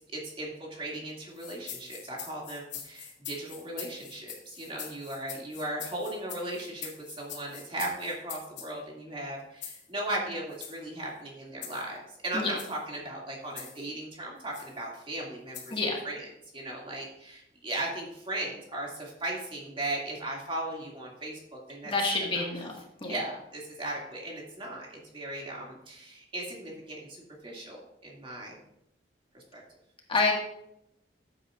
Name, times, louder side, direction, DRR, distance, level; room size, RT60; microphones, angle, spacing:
voice 1, 0.1-15.8 16.0-16.3 16.5-21.9 22.2-22.4 23.1-28.6 29.3-29.6, right 1 dB, 30° right, -3 dB, 2.4 m, -37 dB
sound 1, 1.3-8.7 9.6-9.9 10.5-10.8 11.6-11.9 12.4-12.8 13.6-13.9 14.5-14.7 15.5-15.8, left 8 dB, 75° left, 2.4 m, -43 dB
voice 2, 21.8-22.7 23.0-23.2 30.1-30.3, left 3 dB, 30° left, -1 dB, 1.8 m, -27 dB
13.5 x 8.8 x 2.5 m, 0.78 s
head